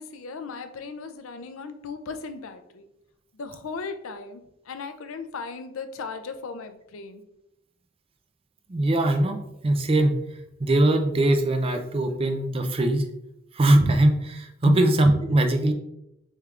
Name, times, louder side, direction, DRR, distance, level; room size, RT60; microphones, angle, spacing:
voice 1, 0.0-2.9 3.3-7.2 14.6-14.8, left 4 dB, 75° left, 8 dB, 0.5 m, -36 dB
voice 2, 8.7-10.2 10.6-13.1 13.5-15.7, right 1 dB, 25° right, 6 dB, 0.4 m, -21 dB
6.4 x 3.3 x 2.4 m, 0.85 s
head